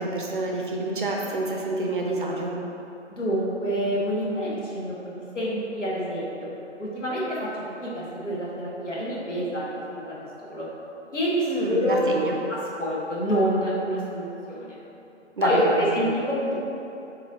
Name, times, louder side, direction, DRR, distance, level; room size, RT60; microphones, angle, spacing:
voice 1, 0.0-2.6 11.5-12.3 15.4-16.0, right 2 dB, 45° right, -1 dB, 0.5 m, -28 dB
voice 2, 3.1-6.5 6.8-7.5 7.8-10.7 11.1-12.0 12.5-14.8 15.4-16.6, equal, 80° left, -7 dB, 1.3 m, -27 dB
7.1 x 2.7 x 2.7 m, 2.9 s
figure-of-eight pair, 140°, 36 cm